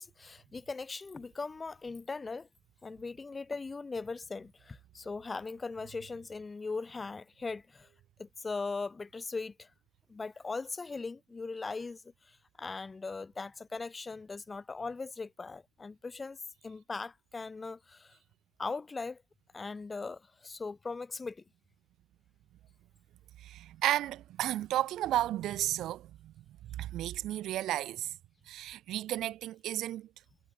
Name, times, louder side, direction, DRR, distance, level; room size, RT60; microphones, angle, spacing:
voice 1, 0.0-2.5 2.8-7.9 8.2-9.7 10.1-18.2 18.6-19.2 19.5-21.4, left 4 dB, 20° left, 2.6 m, -39 dB
voice 2, 23.4-26.4 26.8-28.2 28.5-30.1, right 13 dB, 65° right, 1.3 m, -33 dB
cardioid pair, 125°, 0 cm